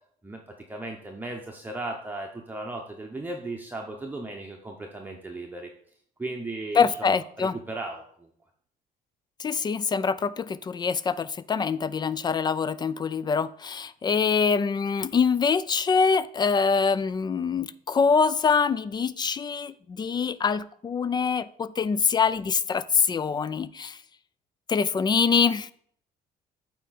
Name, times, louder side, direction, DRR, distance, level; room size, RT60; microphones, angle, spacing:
voice 1, 0.2-5.7 6.2-8.3, right 2 dB, 10° right, 1 dB, 0.8 m, -36 dB
voice 2, 6.8-7.6 9.4-24.0 24.7-25.7, left 5 dB, 25° left, 17 dB, 0.3 m, -24 dB
8.3 x 4.5 x 4.1 m, 0.62 s
cardioid pair, 110°, 17 cm